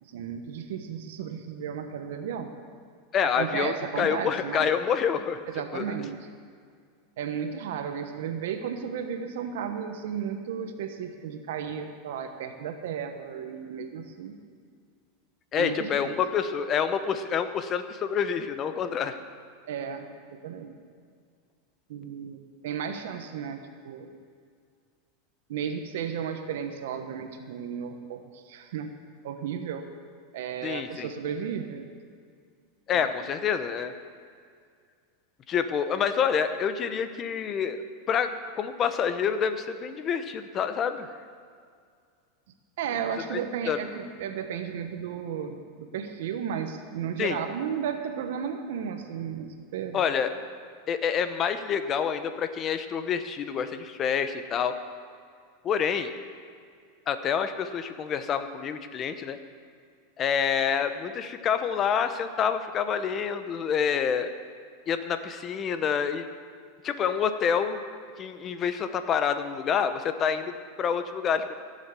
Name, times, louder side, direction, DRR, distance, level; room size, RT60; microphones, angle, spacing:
voice 1, 0.0-2.5 3.2-4.7 5.5-6.2 7.2-14.4 15.6-16.1 19.7-20.1 20.4-20.8 21.9-24.1 25.5-28.9 29.2-29.8 30.3-31.9 32.9-33.1 42.8-50.0, right 7 dB, 75° right, 6 dB, 1.1 m, -34 dB
voice 2, 3.1-5.4 5.7-5.9 15.5-19.2 30.6-31.1 32.9-33.9 35.5-37.8 38.1-38.3 38.6-41.1 43.3-43.4 43.7-43.8 47.2-47.4 49.9-50.3 50.9-54.7 55.6-56.1 57.1-59.4 60.2-64.3 64.9-66.3 66.8-67.8 68.2-70.5 70.8-71.5, left 7 dB, 30° left, 10 dB, 0.8 m, -27 dB
15.5 x 7.4 x 6.8 m, 2.1 s
supercardioid pair, 140°, 0 cm